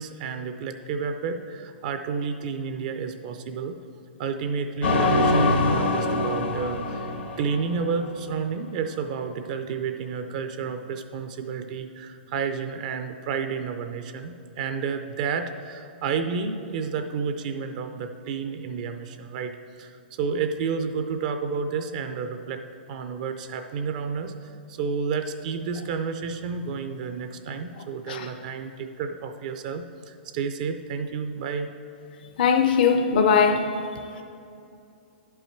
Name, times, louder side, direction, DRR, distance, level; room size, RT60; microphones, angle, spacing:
voice 1, 0.0-3.8 4.2-22.6 22.9-31.7, right 5 dB, 45° right, 7 dB, 0.5 m, -31 dB
sound 1, 4.8-8.2, left 2 dB, 80° left, 1.0 m, -24 dB
voice 2, 32.4-34.2, left 6 dB, 55° left, 6 dB, 0.5 m, -21 dB
10.5 x 5.5 x 4.4 m, 2.6 s
hypercardioid pair, 155°, 6 cm